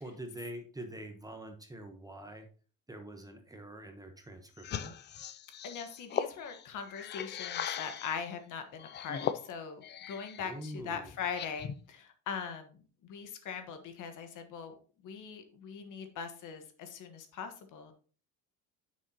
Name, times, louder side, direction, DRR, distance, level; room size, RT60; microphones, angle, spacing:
voice 1, 0.0-2.5 2.9-5.0 10.4-11.1, right 1 dB, 10° right, 5 dB, 1.1 m, -45 dB
sound 1, 4.6-8.3 8.8-10.5 10.9-11.9, left 9 dB, 30° left, 0.4 m, -39 dB
voice 2, 5.6-14.8 15.0-17.9, left 6 dB, 55° left, 7 dB, 1.4 m, -41 dB
9.2 x 6.5 x 2.9 m, 0.39 s
cardioid pair, 135°, 37 cm